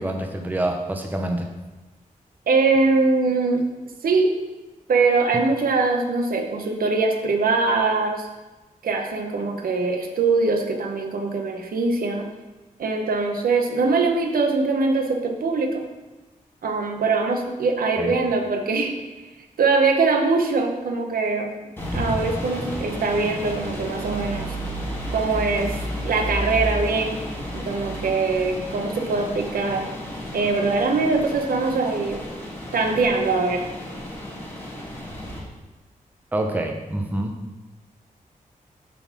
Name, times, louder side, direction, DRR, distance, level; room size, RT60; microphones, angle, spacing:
voice 1, 0.0-1.5 18.0-18.1 36.3-37.4, right 1 dB, 10° right, 3 dB, 0.7 m, -26 dB
voice 2, 2.5-3.6 4.0-4.3 4.9-8.3 8.8-12.3 12.8-15.8 16.6-18.9 19.6-21.6 21.9-24.5 25.1-25.8 26.0-27.2 27.5-29.9 30.3-32.2 32.7-33.6, right 3 dB, 80° right, 3 dB, 0.9 m, -22 dB
sound 1, 21.8-35.4, equal, 15° left, 1.5 m, -32 dB
6.9 x 3.9 x 6.0 m, 1.2 s
wide cardioid pair, 160°, 15 cm